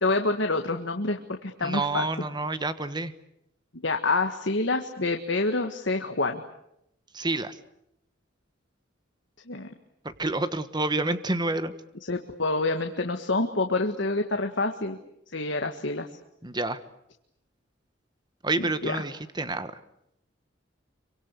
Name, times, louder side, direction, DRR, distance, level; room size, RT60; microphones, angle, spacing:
voice 1, 0.0-2.1 3.8-6.4 9.5-9.7 12.1-15.0 15.3-16.1 18.6-19.0, left 3 dB, 65° left, 5 dB, 1.7 m, -27 dB
voice 2, 1.6-3.1 7.1-7.5 10.2-11.7 16.4-16.8 18.4-19.7, right 2 dB, 20° right, 12 dB, 1.3 m, -28 dB
26.5 x 24.5 x 8.3 m, 0.79 s
head